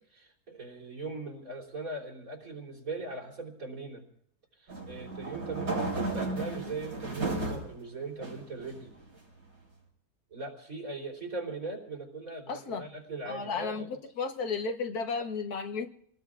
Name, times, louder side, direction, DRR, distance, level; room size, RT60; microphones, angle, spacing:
voice 1, 0.1-4.0 4.6-8.9 10.3-14.0, right 3 dB, 70° right, 1 dB, 4.1 m, -40 dB
sound 1, 4.7-7.7 8.2-9.1, right 3 dB, 85° right, 4.7 m, -34 dB
voice 2, 7.3-7.6 12.5-12.8 13.3-15.9, left 4 dB, 85° left, 5 dB, 1.7 m, -34 dB
28.5 x 19.0 x 2.5 m, 0.67 s
omnidirectional pair, 1.6 m